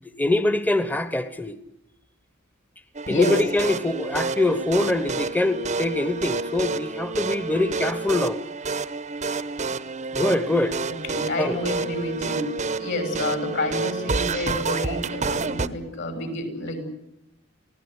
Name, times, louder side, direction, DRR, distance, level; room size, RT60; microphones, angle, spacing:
voice 1, 0.2-1.5 3.1-8.4 10.1-10.8 11.4-11.6, left 2 dB, 10° left, 1.1 m, -23 dB
sound 1, 2.9-15.7, right 4 dB, 35° right, 0.9 m, -29 dB
voice 2, 10.9-12.5 12.8-16.8, left 1 dB, 60° left, 6.6 m, -29 dB
23.5 x 16.5 x 9.9 m
head